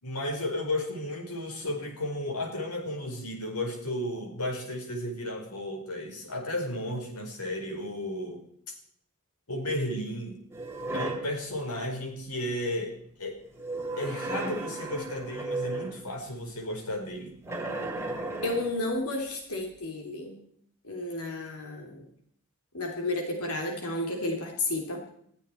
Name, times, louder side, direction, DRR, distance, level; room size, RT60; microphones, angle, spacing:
voice 1, 0.0-8.7 9.5-10.4 10.9-13.4 14.0-17.3, left 1 dB, 90° left, 3 dB, 4.8 m, -34 dB
sound 1, 10.5-11.4 13.5-16.1 17.5-18.8, right 2 dB, 10° right, 2.9 m, -34 dB
voice 2, 18.4-20.4 20.8-22.1 22.7-25.1, left 2 dB, 70° left, 2 dB, 3.2 m, -32 dB
21.5 x 14.5 x 4.5 m, 0.66 s
head